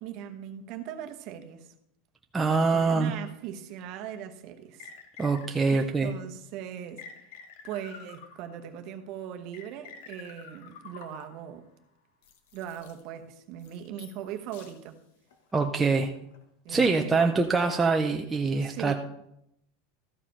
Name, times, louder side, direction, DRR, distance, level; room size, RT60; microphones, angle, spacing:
voice 1, 0.0-1.7 2.7-4.9 5.7-7.0 7.6-11.7 12.5-15.0 16.6-17.4 18.6-18.9, right 10 dB, 40° right, 0.9 m, -39 dB
voice 2, 2.3-3.1 5.2-6.1 15.5-16.1 16.7-18.9, right 4 dB, 10° right, 0.5 m, -24 dB
sound 1, 3.8-3.9 4.8-5.9 7.0-8.8 9.5-11.6 12.2-13.0 13.6-14.3 14.5-14.8 15.3-15.5 16.1-18.1, left 6 dB, 65° left, 1.2 m, -48 dB
13.5 x 4.9 x 5.6 m
supercardioid pair, 175°, 0 cm